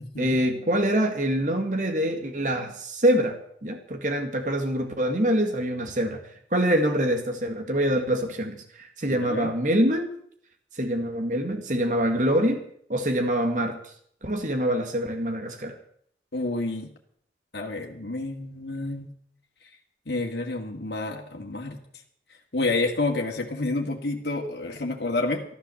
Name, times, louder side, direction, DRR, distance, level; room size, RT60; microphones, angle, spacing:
voice 1, 0.2-6.2 6.5-10.1 10.8-12.6 12.9-13.8 14.2-15.7, equal, 45° right, 5 dB, 2.0 m, -25 dB
voice 2, 9.1-9.5 16.3-16.9 17.5-19.1 20.1-21.8 22.5-25.4, left 2 dB, 70° left, 0 dB, 2.0 m, -29 dB
14.0 x 11.5 x 7.1 m, 0.65 s
head